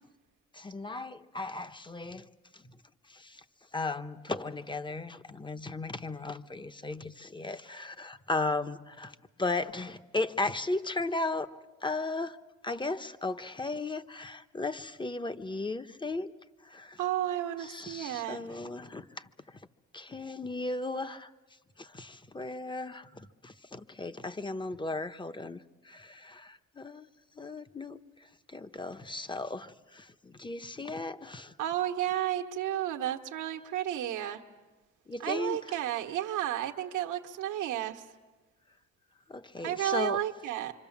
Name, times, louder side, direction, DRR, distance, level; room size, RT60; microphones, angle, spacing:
voice 1, 0.5-2.3 2.5-2.6 3.1-3.4 3.7-12.4 12.6-16.3 16.6-17.0 17.6-19.3 19.9-21.3 21.8-27.1 27.3-28.0 28.5-31.5 35.1-35.6 39.3-40.2, left 2 dB, 15° left, 10 dB, 1.0 m, -36 dB
voice 2, 17.0-18.6 31.6-34.4 35.2-38.0 39.6-40.7, right 12 dB, 85° right, 3 dB, 1.3 m, -32 dB
26.0 x 26.0 x 7.3 m, 1.2 s
cardioid pair, 90°, 30 cm